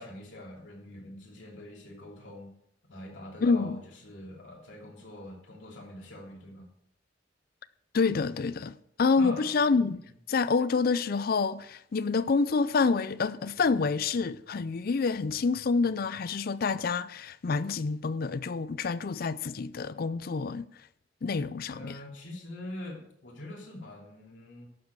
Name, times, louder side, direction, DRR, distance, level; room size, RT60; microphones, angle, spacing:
voice 1, 0.0-2.5 2.9-6.7 9.2-9.4 21.7-24.7, left 1 dB, 75° left, 2.9 m, -43 dB
voice 2, 3.4-3.8 7.9-10.0 10.3-20.9 21.2-22.0, left 4 dB, 50° left, 0.4 m, -27 dB
12.0 x 7.4 x 4.6 m
head